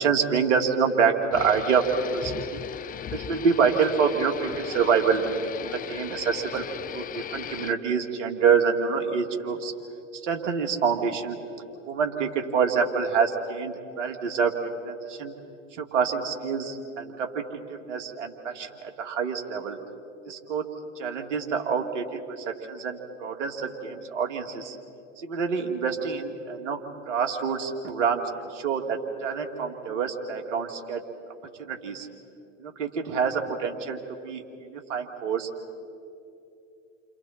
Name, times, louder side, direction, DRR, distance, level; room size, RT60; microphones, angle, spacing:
voice 1, 0.0-2.6 3.1-6.6 6.9-9.7 10.1-11.4 11.9-14.5 14.8-15.3 15.8-19.8 20.3-24.8 25.2-26.8 27.1-31.0 31.6-32.1 32.6-35.5, right 6 dB, 70° right, 3 dB, 2.6 m, -27 dB
sound 1, 1.3-7.7, left 9 dB, 25° left, 0.6 m, -37 dB
29.5 x 27.0 x 4.4 m, 2.7 s
hypercardioid pair, 85°, 38 cm